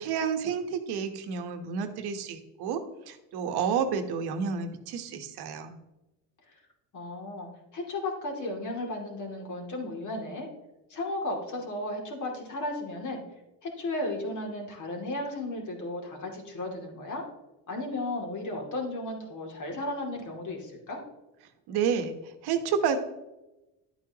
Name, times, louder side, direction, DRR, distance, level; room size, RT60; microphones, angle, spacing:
voice 1, 0.0-5.8 21.7-23.0, right 6 dB, 80° right, 7 dB, 1.2 m, -30 dB
voice 2, 6.9-10.5 10.9-13.2 13.6-17.2 17.7-21.0, left 2 dB, 50° left, 0 dB, 2.6 m, -34 dB
11.0 x 8.5 x 2.9 m, 0.99 s
cardioid pair, 105°, 38 cm